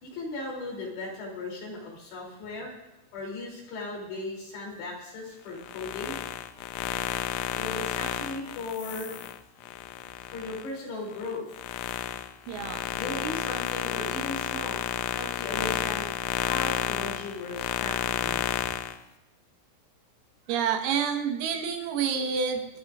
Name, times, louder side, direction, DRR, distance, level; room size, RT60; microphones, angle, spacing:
voice 1, 0.0-2.7 3.1-6.2 7.5-9.2 10.3-11.6 12.9-14.8 15.1-16.1 16.4-18.4, left 2 dB, 60° left, -2 dB, 5.1 m, -37 dB
sound 1, 5.6-10.7 11.1-19.0, left 11 dB, 90° left, 2.5 m, -31 dB
voice 2, 12.5-12.9 20.5-22.7, right 7 dB, 90° right, 4 dB, 4.1 m, -28 dB
24.5 x 13.0 x 2.5 m, 0.95 s
omnidirectional pair, 5.9 m